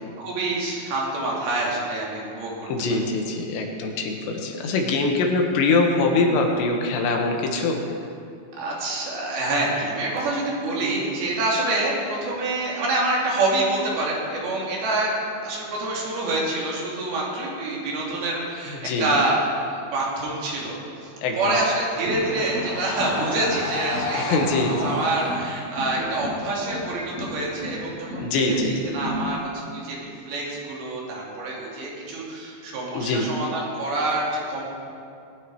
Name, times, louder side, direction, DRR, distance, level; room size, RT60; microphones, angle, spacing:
voice 1, 0.2-3.1 8.5-15.1 15.4-20.8 21.0-24.2 24.6-34.6, right 2 dB, 60° right, -4 dB, 4.4 m, -26 dB
voice 2, 2.7-7.8 18.7-19.1 21.2-21.5 24.2-24.9 28.2-28.7 32.9-33.3, left 3 dB, 80° left, 2 dB, 3.6 m, -23 dB
Screaming, 20.9-25.4, left 2 dB, 65° left, 4.1 m, -32 dB
sound 1, 22.0-22.7 23.0-23.6 23.9-24.5 24.8-25.4 25.8-26.4 26.7-27.3 27.6-28.2 28.6-29.2, equal, 90° right, 5.3 m, -33 dB
20.5 x 9.4 x 4.8 m, 2.5 s
omnidirectional pair, 5.0 m